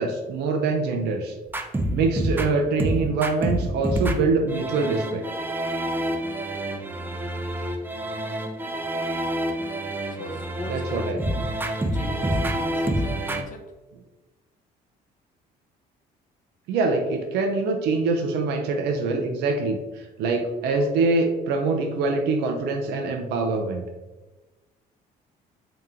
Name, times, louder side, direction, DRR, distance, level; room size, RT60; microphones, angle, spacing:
voice 1, 0.0-1.3 1.9-5.2 10.7-11.4 16.7-23.8, right 3 dB, 80° right, 2 dB, 0.5 m, -24 dB
sound 1, 1.5-13.4, right 1 dB, 10° right, 0.4 m, -28 dB
voice 2, 10.1-11.1 11.9-13.6, left 3 dB, 50° left, 4 dB, 0.8 m, -40 dB
3.5 x 2.9 x 3.7 m, 1.1 s
cardioid pair, 110°, 17 cm